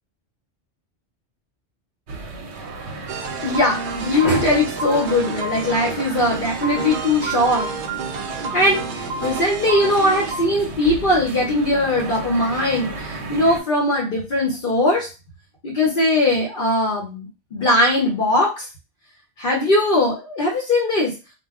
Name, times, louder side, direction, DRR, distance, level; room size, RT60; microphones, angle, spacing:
sound 1, 2.1-13.6, right 2 dB, 80° right, 0.9 m, -34 dB
sound 2, 3.1-10.5, right 4 dB, 60° right, 0.6 m, -30 dB
voice 1, 3.4-7.7 8.5-15.1 15.6-18.7 19.4-21.1, left 1 dB, 55° left, -2 dB, 0.8 m, -20 dB
2.3 x 2.1 x 3.5 m, 0.29 s
omnidirectional pair, 1.1 m